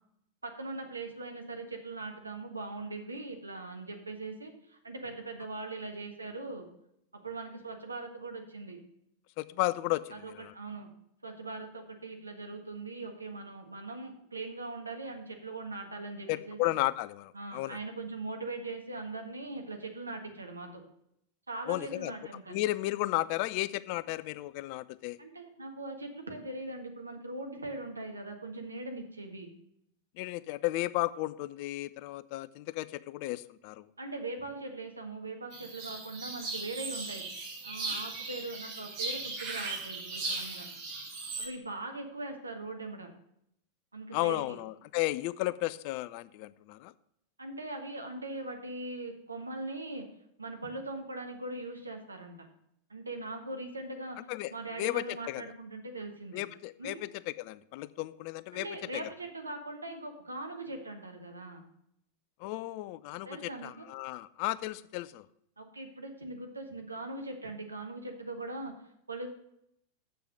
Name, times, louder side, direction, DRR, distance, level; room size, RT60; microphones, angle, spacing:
voice 1, 0.4-6.7 7.1-8.8 10.1-10.9 11.2-16.7 17.3-20.8 21.5-22.6 25.2-29.5 34.0-37.2 37.6-40.7 41.4-43.1 43.9-44.6 47.4-50.1 50.4-52.5 52.9-54.2 54.5-56.4 56.8-57.0 58.5-61.7 63.2-63.9 65.6-68.7 69.1-69.3, right 2 dB, 80° right, 4 dB, 1.5 m, -41 dB
voice 2, 9.4-10.5 16.3-17.8 21.7-22.1 22.5-25.2 30.2-33.9 44.1-46.9 54.3-54.5 54.8-55.4 56.3-58.7 58.9-59.0 62.4-65.3, left 18 dB, 45° left, 17 dB, 0.4 m, -34 dB
sound 1, 35.5-41.5, right 3 dB, 50° right, 4.7 m, -38 dB
7.5 x 6.8 x 6.5 m, 0.75 s
figure-of-eight pair, 90°, 0 cm